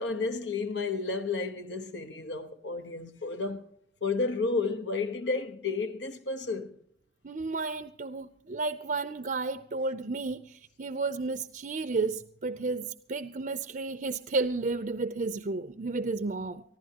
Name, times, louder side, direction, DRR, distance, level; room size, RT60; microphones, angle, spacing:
voice 1, 0.0-3.6 4.0-6.8, left 4 dB, 85° left, 1.2 m, -32 dB
voice 2, 7.2-16.6, right 3 dB, 50° right, 0.5 m, -32 dB
24.5 x 15.0 x 2.9 m
head